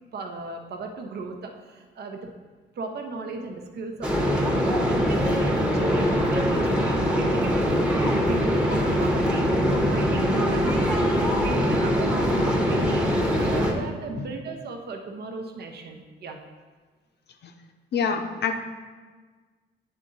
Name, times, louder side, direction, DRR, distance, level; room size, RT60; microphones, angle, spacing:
voice 1, 0.1-2.3 2.7-4.1 4.9-9.5 9.9-16.4, right 3 dB, 55° right, 3 dB, 0.7 m, -36 dB
sound 1, 4.0-13.7, equal, 5° right, 0.9 m, -22 dB
voice 2, 17.9-18.6, left 6 dB, 55° left, 6 dB, 0.7 m, -26 dB
8.9 x 3.8 x 3.9 m, 1.4 s
cardioid pair, 90°, 20 cm